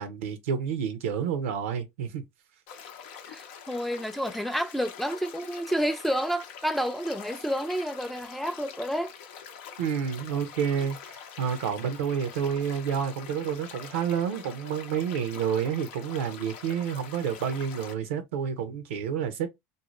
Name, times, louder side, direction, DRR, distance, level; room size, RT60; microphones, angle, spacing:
voice 1, 0.0-2.2 9.8-19.5, right 7 dB, 85° right, 0.6 m, -29 dB
sound 1, 2.7-17.9, left 7 dB, 75° left, 0.6 m, -45 dB
voice 2, 3.3-9.1, equal, ahead, 0.4 m, -30 dB
2.6 x 2.0 x 3.0 m
supercardioid pair, 95°, 7 cm